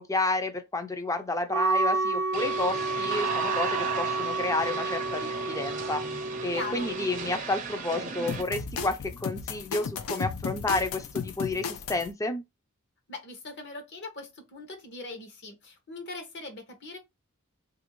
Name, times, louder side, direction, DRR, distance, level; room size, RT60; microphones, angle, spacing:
voice 1, 0.0-12.4, left 2 dB, 15° left, 0.4 m, -31 dB
Wind instrument woodwind instrument, 1.5-7.3, right 3 dB, 70° right, 0.8 m, -30 dB
sound 1, 2.3-8.4, right 5 dB, 35° right, 0.5 m, -35 dB
voice 2, 6.5-7.0 13.1-17.0, left 2 dB, 50° left, 0.9 m, -40 dB
sound 2, 8.3-12.1, left 5 dB, 80° left, 0.5 m, -35 dB
3.4 x 2.5 x 2.9 m
head